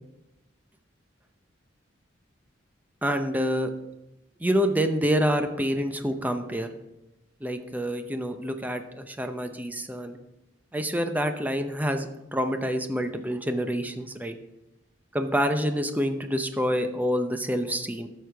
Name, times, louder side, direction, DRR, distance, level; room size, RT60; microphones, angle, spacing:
voice 1, 3.0-3.7 4.4-6.7 7.4-10.2 10.7-14.3 15.1-18.1, equal, 10° right, 7 dB, 0.6 m, -27 dB
12.0 x 6.5 x 3.4 m, 0.93 s
head